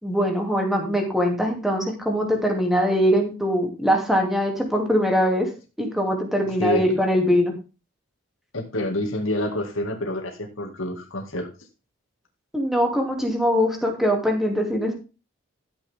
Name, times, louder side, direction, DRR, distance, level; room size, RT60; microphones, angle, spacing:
voice 1, 0.0-5.5 5.8-7.5 12.5-14.9, equal, ahead, 2 dB, 2.8 m, -22 dB
voice 2, 6.6-7.0 8.5-11.5, left 1 dB, 80° left, 2 dB, 2.2 m, -27 dB
13.5 x 7.9 x 3.7 m, 0.32 s
head